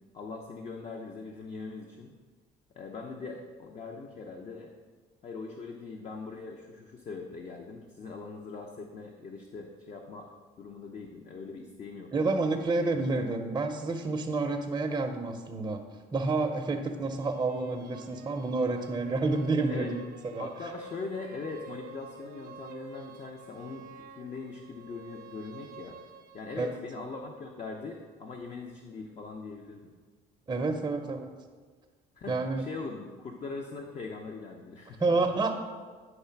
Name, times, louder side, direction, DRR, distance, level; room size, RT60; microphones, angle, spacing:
voice 1, 0.1-2.1 2.7-4.7 5.2-12.5 19.7-19.9 20.4-26.0 26.3-29.9 32.2-35.0, left 4 dB, 40° left, 2 dB, 0.7 m, -41 dB
voice 2, 12.1-15.8 16.1-20.0 20.3-20.7 26.6-26.8 30.5-31.3 32.3-32.7 35.0-35.6, right 3 dB, 20° right, 2 dB, 0.6 m, -29 dB
sound 1, 16.8-26.8, right 4 dB, 65° right, 0.7 m, -49 dB
9.3 x 3.2 x 5.8 m, 1.5 s
cardioid pair, 110°, 17 cm